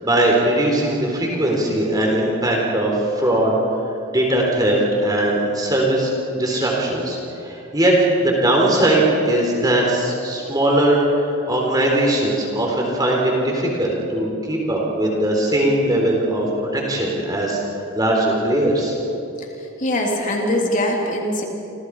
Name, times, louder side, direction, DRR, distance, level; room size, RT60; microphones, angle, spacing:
voice 1, 0.0-3.6 4.1-7.2 7.4-19.0, right 1 dB, 20° right, -1 dB, 3.8 m, -20 dB
voice 2, 19.8-21.4, left 1 dB, 35° left, -1 dB, 3.3 m, -22 dB
29.0 x 27.5 x 4.9 m, 2.8 s
head